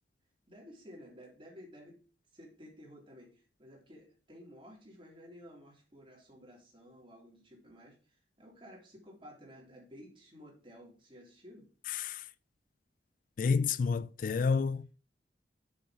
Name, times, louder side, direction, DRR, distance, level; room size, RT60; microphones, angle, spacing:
voice 1, 0.5-2.0 2.3-11.7, equal, 30° right, 3.3 m, -54 dB
voice 2, 11.9-12.2 13.4-14.9, left 5 dB, 45° left, 0.3 m, -30 dB
7.0 x 6.1 x 5.0 m
head